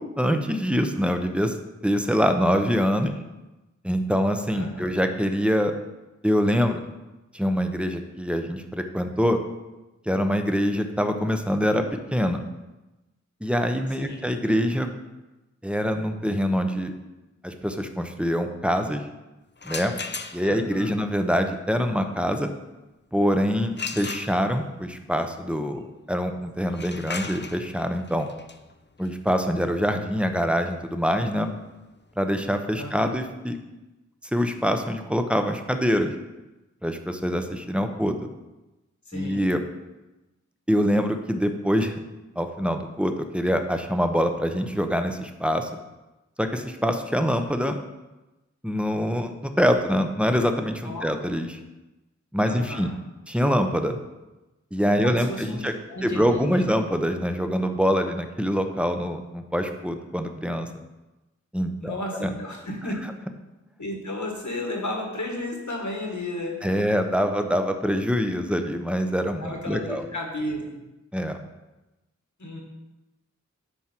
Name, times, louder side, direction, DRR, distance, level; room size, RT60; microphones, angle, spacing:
voice 1, 0.0-1.5 1.8-3.1 3.8-5.7 6.2-6.8 7.3-9.4 10.1-11.8 12.1-12.4 13.4-14.9 15.6-16.9 17.4-19.0 19.6-19.9 20.3-22.5 23.1-28.3 29.0-31.5 32.2-33.6 34.3-36.1 36.8-38.1 39.1-39.6 40.7-41.9 42.4-45.7 46.4-47.8 48.6-51.6 52.3-52.9 53.3-54.0 54.7-55.7 56.0-60.7 61.5-62.3 66.6-70.0 71.1-71.4, equal, 5° right, 6 dB, 0.7 m, -24 dB
voice 2, 4.5-4.9 14.0-14.3 20.4-21.0 32.8-33.1 39.1-39.4 50.8-51.1 52.4-52.9 55.0-55.6 55.9-56.7 61.8-63.0 63.8-66.6 69.4-70.6 72.4-72.6, left 1 dB, 75° left, 0 dB, 1.6 m, -33 dB
sound 1, 19.6-20.7 23.8-24.8 26.6-32.3, left 4 dB, 40° left, 0.5 m, -38 dB
9.7 x 4.6 x 4.4 m, 1.0 s
wide cardioid pair, 40°, 30 cm